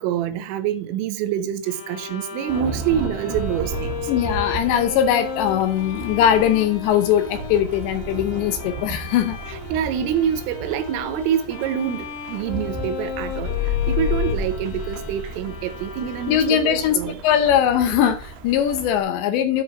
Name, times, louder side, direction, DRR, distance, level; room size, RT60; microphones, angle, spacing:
voice 1, 0.0-4.1 9.5-17.2, right 9 dB, 85° right, 3.6 m, -26 dB
Bowed string instrument, 1.6-16.9, left 7 dB, 60° left, 2.9 m, -35 dB
Thunderstorm / Rain, 2.5-19.0, right 3 dB, 65° right, 2.8 m, -35 dB
voice 2, 4.1-9.4 16.3-17.0 17.2-19.6, left 9 dB, 80° left, 2.7 m, -20 dB
sound 1, 13.0-15.6, left 8 dB, 35° left, 1.7 m, -26 dB
10.0 x 4.4 x 6.1 m
omnidirectional pair, 5.7 m